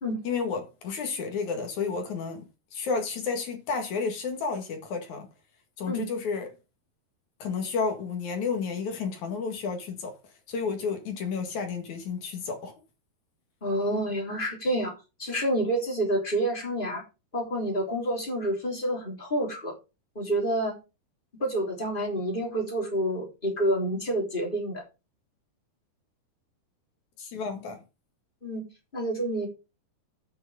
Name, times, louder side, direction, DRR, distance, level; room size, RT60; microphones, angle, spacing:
voice 1, 0.2-5.3 5.8-6.5 7.4-10.2 10.5-12.7 27.2-27.8, left 5 dB, 55° left, 2.8 m, -31 dB
voice 2, 13.6-14.9 15.2-17.0 17.3-19.7 20.2-20.8 21.3-24.8 28.4-28.6 28.9-29.5, right 1 dB, 15° left, 3.3 m, -28 dB
10.0 x 6.2 x 5.0 m
omnidirectional pair, 4.8 m